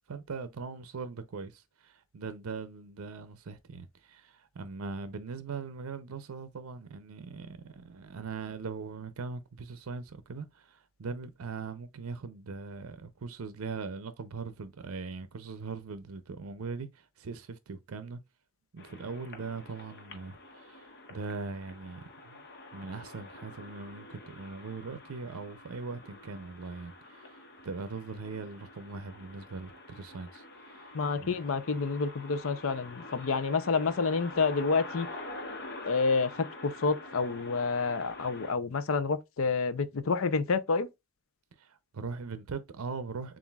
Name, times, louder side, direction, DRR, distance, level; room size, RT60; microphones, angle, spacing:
voice 1, 0.1-18.2 18.7-22.4 22.7-31.3 41.6-43.4, right 4 dB, 90° right, 0.5 m, -40 dB
sound 1, 18.8-38.5, left 2 dB, 55° left, 1.2 m, -47 dB
voice 2, 30.9-35.1 35.8-40.9, left 4 dB, 70° left, 0.6 m, -29 dB
7.1 x 2.5 x 2.3 m
head